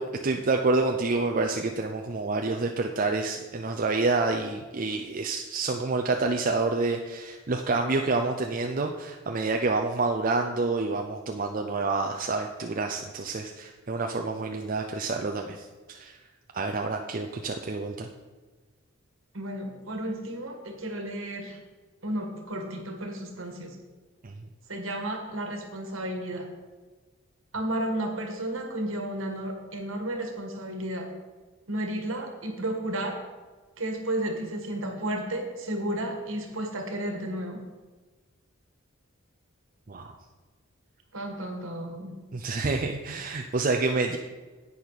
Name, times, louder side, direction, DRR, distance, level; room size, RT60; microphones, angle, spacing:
voice 1, 0.0-16.2 16.5-18.1 24.2-24.5 39.9-40.2 42.3-44.2, right 3 dB, 40° right, 3 dB, 0.5 m, -28 dB
voice 2, 19.3-21.6 22.0-23.8 24.7-26.5 27.5-31.1 31.7-33.2 33.8-37.6 41.1-42.1, right 1 dB, 70° right, 3 dB, 1.7 m, -32 dB
10.5 x 8.5 x 4.1 m, 1.3 s
head